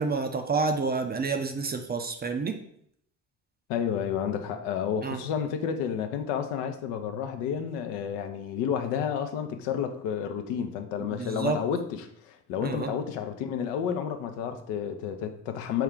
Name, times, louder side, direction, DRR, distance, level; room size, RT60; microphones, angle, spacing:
voice 1, 0.0-2.6 5.0-5.2 11.2-11.6 12.6-12.9, right 4 dB, 25° right, 0.4 m, -29 dB
voice 2, 3.7-15.8, left 8 dB, 75° left, 0.6 m, -31 dB
4.5 x 2.3 x 3.6 m
hypercardioid pair, 50°, 43 cm